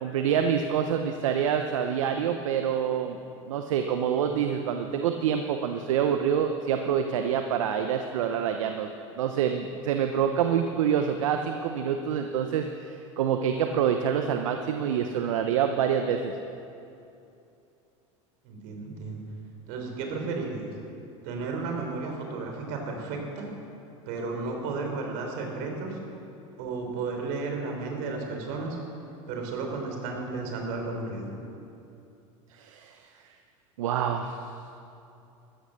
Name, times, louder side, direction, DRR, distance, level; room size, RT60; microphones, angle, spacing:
voice 1, 0.0-3.2 3.5-8.9 9.2-16.3 32.6-33.0 33.8-34.4, right 8 dB, 80° right, 6 dB, 0.9 m, -26 dB
voice 2, 18.4-19.2 19.7-20.7 21.2-23.5 24.1-26.0 26.6-28.8 29.3-31.3, right 3 dB, 60° right, 2 dB, 4.0 m, -33 dB
14.5 x 13.5 x 6.7 m, 2.7 s
hypercardioid pair, 95°, 17 cm